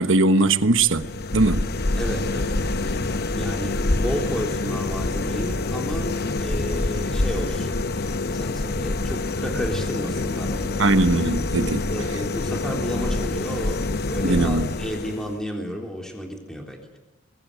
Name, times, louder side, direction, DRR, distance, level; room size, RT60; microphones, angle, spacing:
voice 1, 0.0-1.7 10.8-11.8 14.2-14.7, right 2 dB, 70° right, 1.2 m, -20 dB
sound 1, 0.7-15.4, left 2 dB, 50° left, 1.0 m, -26 dB
voice 2, 1.9-7.7 8.0-11.0 11.7-16.8, equal, 5° left, 3.6 m, -33 dB
26.5 x 21.5 x 9.3 m
head